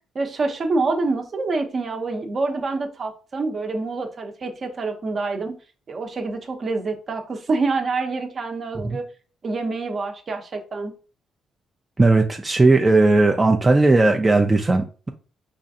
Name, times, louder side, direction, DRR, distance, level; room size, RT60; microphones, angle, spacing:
voice 1, 0.1-5.5 5.9-9.1 9.4-10.9, right 3 dB, 45° right, 0.7 m, -26 dB
voice 2, 12.0-15.1, right 2 dB, 20° right, 0.4 m, -17 dB
4.9 x 2.4 x 2.7 m
cardioid pair, 90°, 0 cm